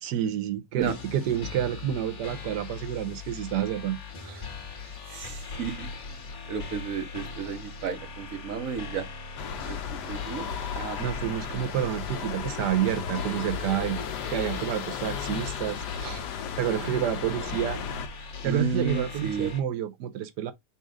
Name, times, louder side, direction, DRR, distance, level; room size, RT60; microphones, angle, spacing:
voice 1, 0.0-4.0 4.2-4.5 11.0-16.2 16.6-17.8 18.4-20.5, right 10 dB, 85° right, 1.3 m, -29 dB
sound 1, 0.8-19.6, left 5 dB, 50° left, 1.4 m, -41 dB
voice 2, 5.1-6.2 6.5-9.1 9.7-10.5 10.7-11.0 18.4-19.5, right 5 dB, 60° right, 1.3 m, -32 dB
sound 2, 9.4-18.1, left 6 dB, 80° left, 1.3 m, -35 dB
4.2 x 2.4 x 4.8 m
omnidirectional pair, 1.8 m